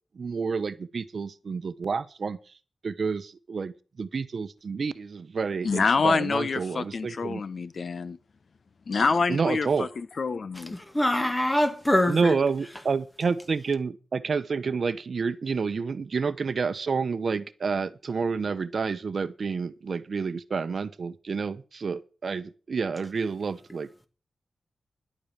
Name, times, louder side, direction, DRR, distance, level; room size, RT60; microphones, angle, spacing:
voice 1, 0.1-2.4 2.8-7.4 9.3-9.9 12.1-24.1, right 5 dB, 60° right, 0.9 m, -29 dB
voice 2, 5.6-8.2 8.9-10.7, left 4 dB, 60° left, 0.8 m, -26 dB
voice 3, 10.7-12.3, left 1 dB, 15° left, 1.7 m, -24 dB
11.0 x 8.6 x 7.3 m
wide cardioid pair, 115°, 0 cm